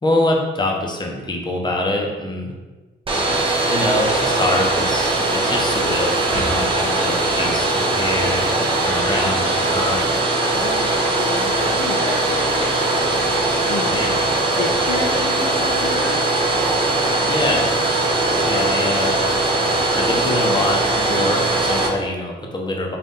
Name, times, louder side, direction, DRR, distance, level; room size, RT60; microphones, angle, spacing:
voice 1, 0.0-2.5 3.7-10.1 13.9-14.2 17.2-17.7 18.5-19.2 19.9-23.0, left 1 dB, 20° left, 0 dB, 0.8 m, -24 dB
Domestic sounds home sounds, 3.1-21.9, right 2 dB, 25° right, 0.8 m, -20 dB
voice 2, 10.5-13.9 14.6-16.2 18.2-18.5, left 4 dB, 50° left, 0 dB, 0.5 m, -31 dB
4.1 x 2.5 x 3.6 m, 1.2 s
cardioid pair, 90°, 20 cm